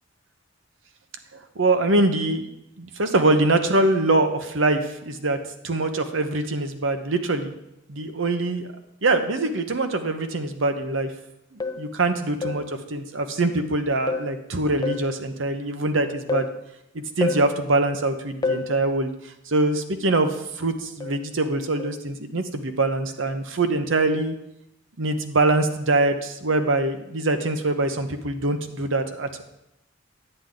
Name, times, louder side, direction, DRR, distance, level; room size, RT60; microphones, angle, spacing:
voice 1, 1.3-2.5 2.8-5.4 5.6-7.5 7.9-8.7 9.0-11.1 11.5-16.5 16.9-24.3 25.0-29.4, right 2 dB, 85° right, 7 dB, 0.9 m, -23 dB
sound 1, 11.6-11.9 12.4-12.7 14.1-14.4 14.8-15.1 16.3-16.6 17.2-17.5 18.4-18.7 21.0-21.3 21.8-22.0, left 4 dB, 20° left, 0.5 m, -28 dB
10.0 x 8.7 x 3.9 m, 0.84 s
head